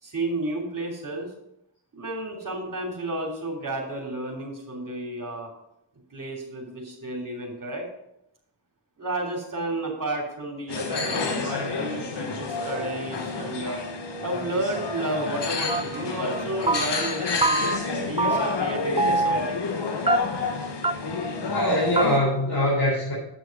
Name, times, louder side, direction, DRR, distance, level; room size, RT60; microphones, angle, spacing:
voice 1, 0.0-1.3 1.9-5.5 6.1-7.8 9.0-13.8 14.2-17.8 18.1-19.6, right 2 dB, 50° right, 0 dB, 3.0 m, -32 dB
sound 1, 10.7-22.2, left 4 dB, 85° left, 1.3 m, -29 dB
sound 2, 15.7-16.1 16.3-17.1 17.4-17.9 18.2-18.7 19.0-19.5 20.1-20.5 20.8-20.9 21.2-21.3 21.6-21.7 22.0-22.1, right 3 dB, 15° right, 0.5 m, -24 dB
voice 2, 21.4-23.1, left 1 dB, 50° left, -6 dB, 4.0 m, -23 dB
8.4 x 6.2 x 5.3 m, 0.78 s
cardioid pair, 45°, 41 cm